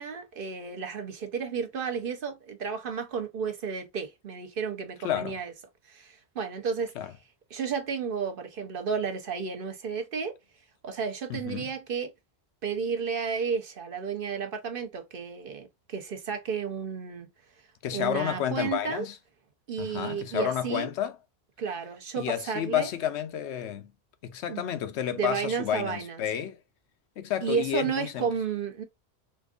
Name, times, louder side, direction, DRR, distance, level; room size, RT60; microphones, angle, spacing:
voice 1, 0.0-5.5 5.9-6.9 7.5-10.4 10.8-12.1 12.6-17.3 17.9-19.1 19.7-20.9 21.6-22.9 24.5-24.6 25.2-26.2 27.4-28.8, right 6 dB, 55° right, 0.9 m, -32 dB
voice 2, 5.0-5.4 6.9-7.1 11.3-11.7 17.8-19.2 19.8-21.2 22.2-23.9 24.2-26.6 27.2-28.3, left 10 dB, 85° left, 0.9 m, -30 dB
4.4 x 2.5 x 2.4 m
omnidirectional pair, 1.1 m